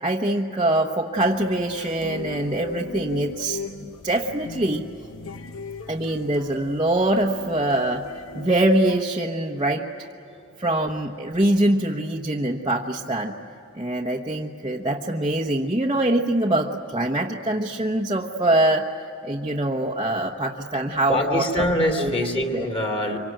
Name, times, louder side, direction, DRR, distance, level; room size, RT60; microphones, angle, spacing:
voice 1, 0.0-4.8 5.9-8.1 8.3-9.9 10.6-13.3 13.7-18.9 19.2-21.7 22.0-22.1 22.5-22.7, right 1 dB, 20° right, -2 dB, 1.1 m, -23 dB
sound 1, 1.1-9.0, left 3 dB, 75° left, 0.9 m, -39 dB
voice 2, 21.1-23.2, left 1 dB, 25° left, 2 dB, 2.8 m, -24 dB
26.0 x 24.5 x 9.2 m, 2.9 s
head